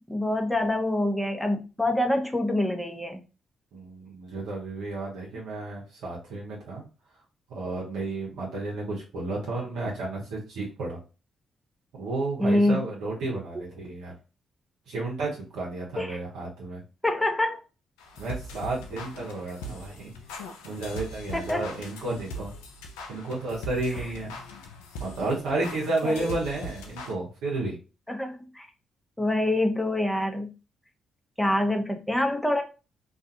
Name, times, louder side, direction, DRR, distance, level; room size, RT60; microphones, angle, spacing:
voice 1, 0.1-3.2 12.4-12.8 16.0-16.2 17.0-17.6 21.3-21.7 26.0-26.3 28.1-28.7 29.2-30.5 31.4-32.6, left 1 dB, 5° left, 4 dB, 0.7 m, -26 dB
voice 2, 3.7-6.8 7.5-11.0 11.9-14.1 14.9-16.8 18.2-20.1 20.6-22.5 23.1-24.3 25.0-27.8, right 2 dB, 75° right, -3 dB, 0.8 m, -32 dB
sound 1, 18.0-27.1, equal, 85° left, 0.3 m, -41 dB
2.4 x 2.3 x 2.7 m, 0.31 s
hypercardioid pair, 45°, 0 cm